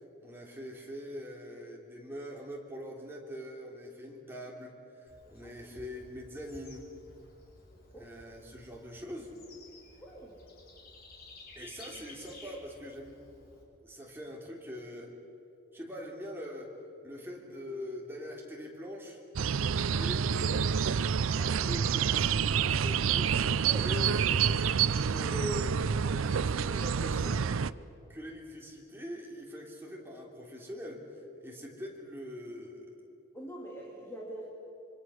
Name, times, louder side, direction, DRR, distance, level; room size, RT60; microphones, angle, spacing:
voice 1, 0.2-6.9 8.0-9.3 11.5-13.2 13.8-15.1 15.7-16.7 17.0-19.2 19.9-20.3 21.2-24.1 25.0-25.8 26.0-27.5 28.1-32.9, equal, 10° right, -2 dB, 3.3 m, -43 dB
Bird / Insect, 5.1-13.6, left 2 dB, 45° left, 4.8 m, -54 dB
voice 2, 5.2-5.7 7.7-8.1 10.0-10.4 23.6-23.9 33.3-34.5, right 1 dB, 10° left, -4 dB, 3.2 m, -45 dB
sound 1, 19.4-27.7, right 7 dB, 80° right, 0.5 m, -28 dB
26.0 x 24.5 x 6.4 m, 2.8 s
head